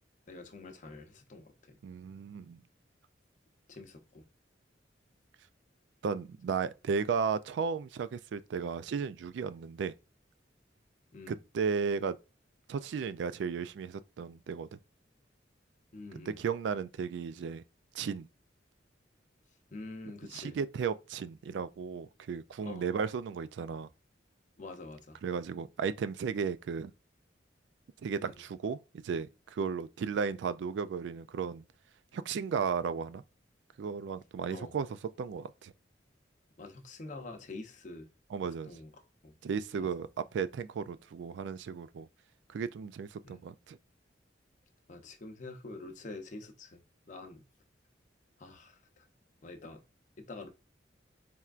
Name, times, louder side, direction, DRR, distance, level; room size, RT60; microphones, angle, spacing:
voice 1, 0.3-1.8 3.7-4.2 11.1-11.4 15.9-16.4 19.7-20.6 22.6-22.9 24.6-25.2 28.2-28.3 34.5-34.8 36.6-38.1 38.6-38.9 39.2-39.4 39.8-39.9 43.2-43.4 44.9-47.4 48.4-49.1 49.4-49.8 50.2-50.5, left 2 dB, 45° left, 0.7 m, -46 dB
voice 2, 1.8-2.6 6.0-9.9 11.3-12.2 12.7-14.8 16.3-17.6 17.9-18.3 20.3-23.9 25.2-26.9 28.0-31.6 32.1-33.2 33.8-34.9 35.2-35.7 38.3-38.7 39.4-42.1 42.5-43.8, right 6 dB, 75° right, 0.3 m, -34 dB
4.3 x 3.4 x 2.4 m
head